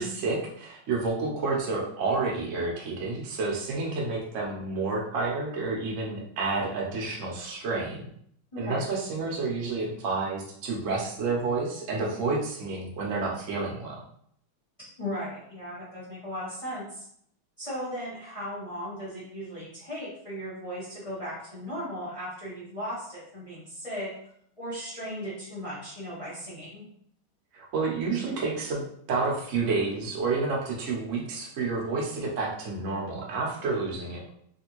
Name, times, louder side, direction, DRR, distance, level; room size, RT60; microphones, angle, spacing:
voice 1, 0.0-8.1 8.6-14.0 27.5-28.8 29.1-34.3, right 3 dB, 60° right, -3 dB, 0.8 m, -30 dB
voice 2, 8.5-8.8 14.8-17.0 17.6-24.1 24.6-26.8, equal, 35° left, -8 dB, 0.5 m, -37 dB
3.3 x 2.5 x 3.0 m, 0.67 s
omnidirectional pair, 2.3 m